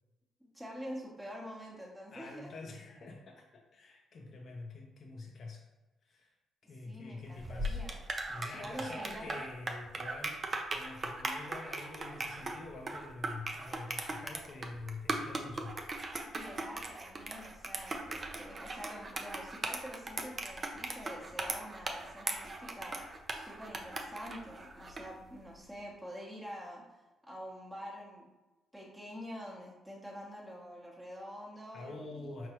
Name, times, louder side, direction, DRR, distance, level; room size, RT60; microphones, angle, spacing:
voice 1, 0.4-2.6 6.9-8.0 8.4-9.4 16.3-28.3 28.7-32.3, equal, 5° right, -5 dB, 1.0 m, -46 dB
voice 2, 2.1-5.6 6.0-6.3 6.7-7.8 8.3-10.4 10.7-15.8 31.7-32.5, left 3 dB, 50° left, 0 dB, 0.6 m, -46 dB
sound 1, 7.3-25.1, right 2 dB, 35° right, 0.5 m, -39 dB
4.6 x 3.0 x 3.0 m, 1.1 s
cardioid pair, 90°, 0 cm